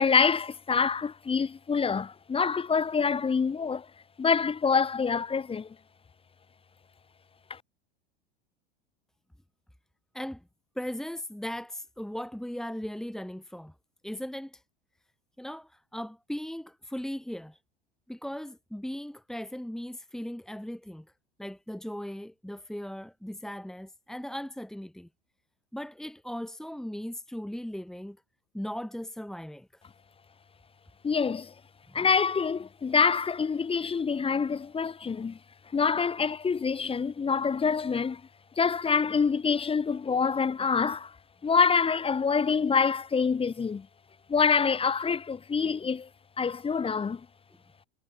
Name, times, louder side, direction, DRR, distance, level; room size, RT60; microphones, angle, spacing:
voice 1, 0.0-3.8 4.2-5.7 7.5-7.6 31.0-31.5 31.9-35.4 35.7-38.2 38.6-41.1 41.4-43.9 44.3-46.1 46.4-47.2, left 5 dB, 20° left, 4.9 m, -26 dB
voice 2, 10.8-13.7 14.0-14.6 15.4-17.6 18.1-21.1 21.4-25.1 25.7-28.2 28.5-29.8 31.9-32.0, equal, ahead, 3.0 m, -38 dB
figure-of-eight pair, 85°, 29 cm